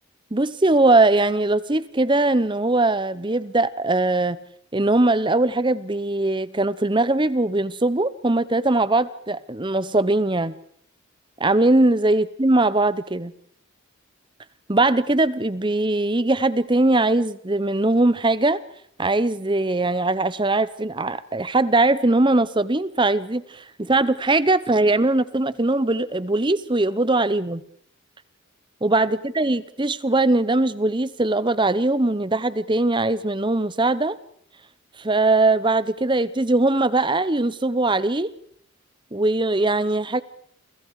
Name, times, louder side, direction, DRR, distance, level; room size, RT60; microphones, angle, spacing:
voice 1, 0.3-4.4 4.7-10.5 11.4-13.3 14.7-18.6 19.0-27.6 28.8-34.2 35.0-38.3 39.1-40.2, right 2 dB, 20° right, 16 dB, 0.8 m, -21 dB
29.0 x 25.0 x 4.8 m, 0.66 s
head